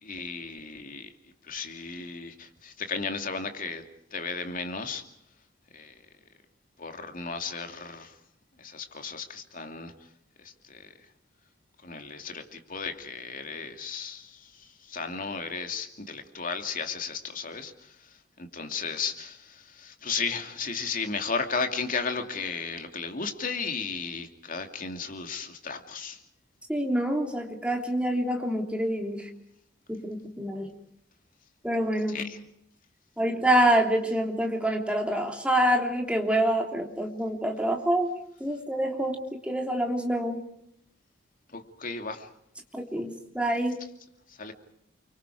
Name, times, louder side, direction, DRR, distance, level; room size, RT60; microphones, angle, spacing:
voice 1, 0.0-5.0 5.7-6.1 6.8-8.2 8.6-9.9 10.4-11.1 11.8-26.2 32.1-32.4 41.5-42.3 44.3-44.5, left 5 dB, 45° left, 6 dB, 2.6 m, -35 dB
voice 2, 26.7-29.3 29.9-30.7 31.6-32.2 33.2-38.1 38.4-39.2 39.4-40.4 42.7-43.8, right 1 dB, 5° right, 2 dB, 3.4 m, -26 dB
30.0 x 24.5 x 4.9 m, 0.74 s
head